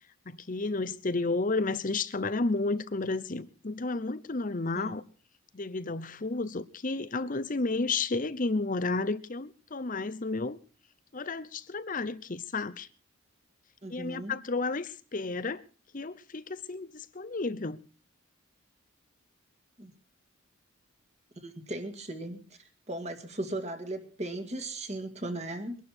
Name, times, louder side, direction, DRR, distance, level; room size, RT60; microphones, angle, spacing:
voice 1, 0.3-5.0 5.5-10.6 11.1-12.9 13.9-15.6 15.9-17.8, left 3 dB, 40° left, 0.7 m, -32 dB
voice 2, 4.7-5.0 13.8-14.4 19.8-19.9 21.4-25.8, right 1 dB, 30° right, 2.1 m, -37 dB
23.0 x 12.0 x 4.4 m
head